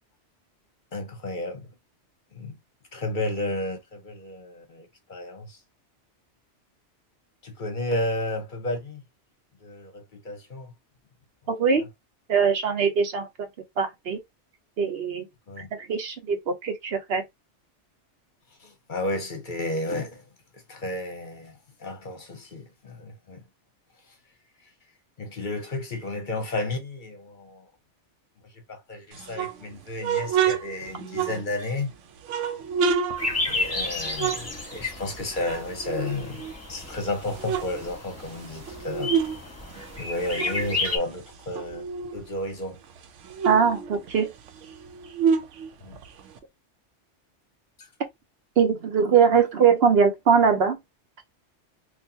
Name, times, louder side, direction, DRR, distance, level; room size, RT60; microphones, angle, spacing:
voice 1, 0.9-1.7 2.3-2.5 2.9-5.6 7.4-9.0 9.6-10.7 11.8-11.9 15.5-15.7 18.6-20.2 20.7-21.5 21.8-23.4 25.2-27.7 28.7-31.9 33.5-36.4 36.7-39.1 40.0-41.8 42.1-42.8 45.8-46.0 47.8-47.9, left 1 dB, 50° left, 0.8 m, -32 dB
voice 2, 11.5-11.8 12.3-13.3 13.8-14.2 14.8-15.3 15.9-17.2 43.5-44.3 48.6-50.8, right 6 dB, 60° right, 0.9 m, -21 dB
sound 1, 29.1-31.8 32.2-35.1 35.4-36.7 37.1-39.4 39.7-42.3 42.6-42.7 43.0-46.4, right 6 dB, 85° right, 0.9 m, -29 dB
sound 2, 33.2-41.0, left 2 dB, 15° left, 1.1 m, -32 dB
4.0 x 2.4 x 2.7 m
omnidirectional pair, 1.2 m